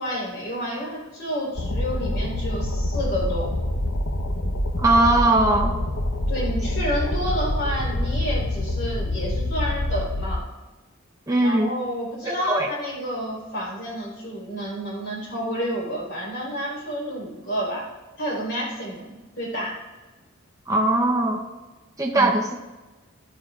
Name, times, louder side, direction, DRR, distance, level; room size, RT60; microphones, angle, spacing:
voice 1, 0.0-3.5 6.3-10.4 11.4-17.9 18.2-19.8 22.1-22.4, equal, 55° left, -4 dB, 4.2 m, -30 dB
sound 1, 1.6-10.4, left 1 dB, 85° left, 1.1 m, -26 dB
voice 2, 4.8-5.7 11.3-11.7 12.3-12.7 20.7-21.4 22.0-22.5, right 2 dB, 15° right, 0 dB, 0.9 m, -20 dB
18.0 x 12.0 x 2.5 m, 1.2 s
head